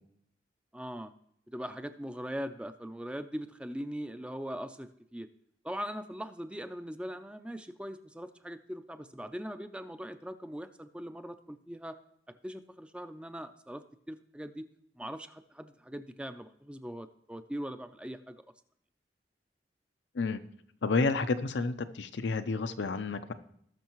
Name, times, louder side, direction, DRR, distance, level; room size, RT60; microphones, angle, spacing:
voice 1, 0.7-1.1 1.5-5.3 5.6-12.0 12.4-14.6 15.0-18.4, equal, 5° right, 10 dB, 0.4 m, -41 dB
voice 2, 20.8-23.3, left 3 dB, 85° left, 10 dB, 0.6 m, -30 dB
18.5 x 6.4 x 3.0 m, 0.69 s
head